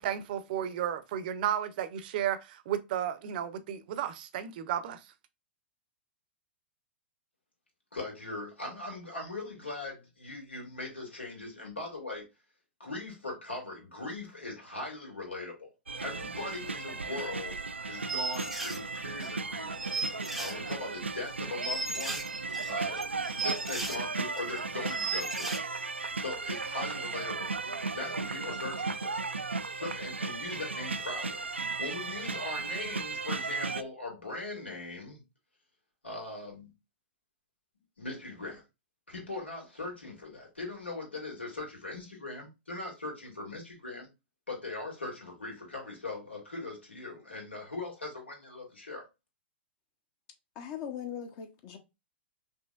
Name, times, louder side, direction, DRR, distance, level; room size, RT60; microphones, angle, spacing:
voice 1, 0.0-5.0, right 10 dB, 50° right, 0.6 m, -33 dB
voice 2, 7.9-12.3 12.8-15.7 16.0-22.3 22.7-25.5 26.2-29.2 29.6-31.5 31.8-35.2 36.0-36.7 38.0-38.6 39.1-44.1 44.5-49.0, left 2 dB, 80° left, 2.2 m, -40 dB
sound 1, 15.9-33.8, right 4 dB, 85° right, 0.4 m, -36 dB
sound 2, 18.1-18.8 19.2-19.3 19.7-20.9 21.2-21.3 21.6-24.0 24.4-24.6 24.9-25.6, right 3 dB, ahead, 0.6 m, -35 dB
voice 3, 50.6-51.8, left 8 dB, 40° left, 0.9 m, -39 dB
5.2 x 2.9 x 2.4 m
figure-of-eight pair, 105°, 6 cm